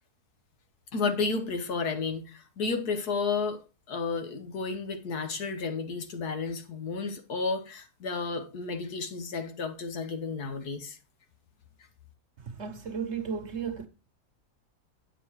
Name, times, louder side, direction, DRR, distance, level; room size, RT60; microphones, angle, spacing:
voice 1, 0.9-3.6 3.9-11.0, left 4 dB, 70° left, 1.8 m, -32 dB
voice 2, 12.4-13.9, right 6 dB, 50° right, 1.1 m, -34 dB
9.3 x 6.9 x 4.7 m
omnidirectional pair, 1.7 m